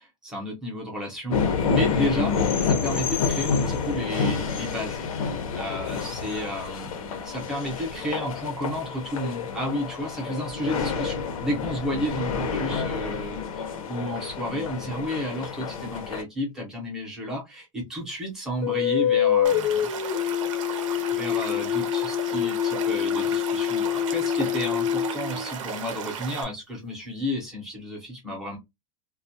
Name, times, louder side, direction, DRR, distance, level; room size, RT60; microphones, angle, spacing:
voice 1, 0.0-5.1 5.5-19.9 21.1-28.6, equal, 5° right, 0.6 m, -32 dB
sound 1, 1.3-16.2, left 5 dB, 85° left, 0.7 m, -28 dB
sound 2, 18.6-26.0, left 11 dB, 35° left, 0.5 m, -25 dB
Stream / Liquid, 19.4-26.4, right 7 dB, 70° right, 0.6 m, -35 dB
2.3 x 2.0 x 2.6 m
supercardioid pair, 180°, 17 cm